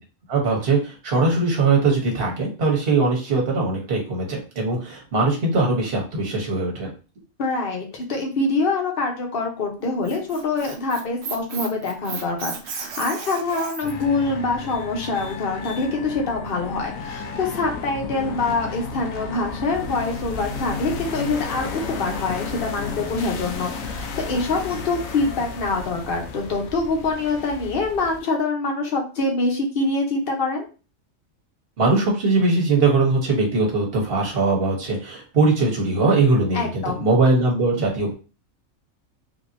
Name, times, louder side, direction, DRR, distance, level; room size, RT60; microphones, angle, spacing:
voice 1, 0.3-6.9 31.8-38.1, right 3 dB, 45° right, 0 dB, 1.2 m, -21 dB
voice 2, 7.4-30.7 36.5-37.1, left 3 dB, 50° left, 2 dB, 0.9 m, -25 dB
Squeak, 9.8-14.0, right 5 dB, 60° right, 0.8 m, -34 dB
sound 1, 13.8-28.2, left 4 dB, 75° left, 1.0 m, -33 dB
3.5 x 2.7 x 2.6 m, 0.34 s
omnidirectional pair, 1.4 m